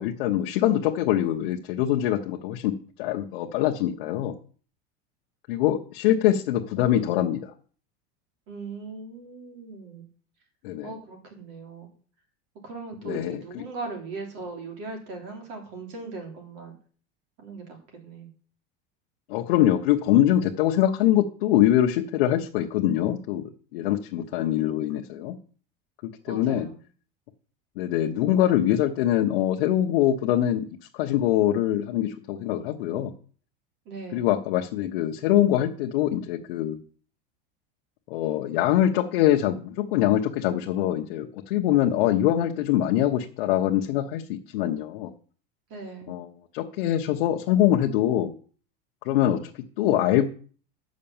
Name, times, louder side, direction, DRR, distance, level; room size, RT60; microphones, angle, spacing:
voice 1, 0.0-4.3 5.5-7.5 10.6-10.9 13.0-13.6 19.3-23.4 23.7-25.4 26.0-26.7 27.8-30.7 30.9-33.1 34.1-36.8 38.1-45.1 46.1-48.3 49.0-50.3, left 12 dB, 65° left, 0 dB, 1.1 m, -23 dB
voice 2, 8.5-10.0 10.8-11.9 12.6-16.7 17.4-18.3 26.3-26.8 33.8-34.3 45.7-46.1, right 3 dB, 50° right, 2 dB, 3.4 m, -39 dB
8.8 x 6.4 x 7.2 m, 0.42 s
supercardioid pair, 170°, 30 cm